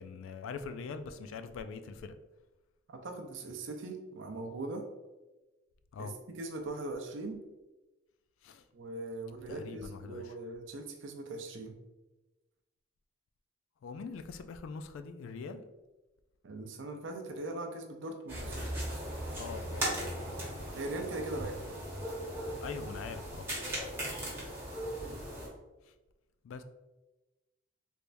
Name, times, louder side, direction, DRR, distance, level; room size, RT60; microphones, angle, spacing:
voice 1, 0.0-2.1 5.9-6.2 8.4-8.6 9.5-10.2 13.8-15.6 18.4-18.7 19.4-20.3 22.6-23.5 26.4-26.6, left 5 dB, 80° left, 9 dB, 0.3 m, -43 dB
voice 2, 2.9-4.8 6.0-7.4 8.7-11.8 16.4-18.4 20.8-21.7, right 2 dB, 70° right, 3 dB, 0.5 m, -40 dB
sound 1, 18.3-25.5, right 1 dB, 10° right, 1.0 m, -38 dB
3.4 x 3.2 x 2.5 m, 1.1 s
head